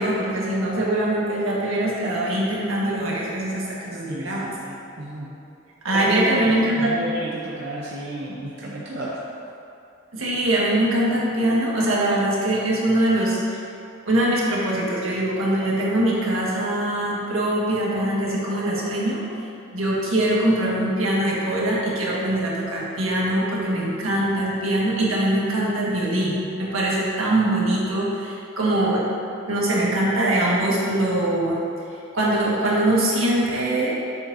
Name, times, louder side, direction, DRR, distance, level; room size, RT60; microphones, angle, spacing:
voice 1, 0.0-4.5 5.8-6.9 10.1-13.6 14.0-19.2 19.7-29.0 29.5-31.6 32.1-33.9, right 1 dB, 85° right, -5 dB, 1.6 m, -22 dB
voice 2, 4.1-5.4 5.9-9.2, right 1 dB, 55° right, -5 dB, 0.7 m, -31 dB
7.8 x 7.0 x 2.7 m, 2.6 s
head